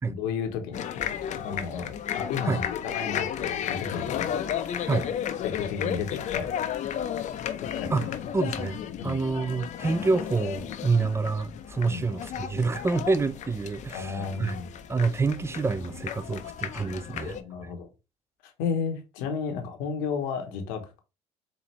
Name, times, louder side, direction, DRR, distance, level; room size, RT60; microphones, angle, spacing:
voice 1, 0.1-2.6 2.9-4.7 5.4-6.5 7.6-7.9 9.0-9.2 11.9-12.1 13.9-14.7 17.1-17.9 18.4-21.0, left 6 dB, 75° left, 0.9 m, -33 dB
sound 1, 0.7-17.4, left 9 dB, 50° left, 0.6 m, -33 dB
voice 2, 7.9-14.6 14.9-17.4 17.6-17.7, right 4 dB, 15° right, 0.5 m, -27 dB
4.2 x 2.8 x 3.1 m
hypercardioid pair, 65°, 15 cm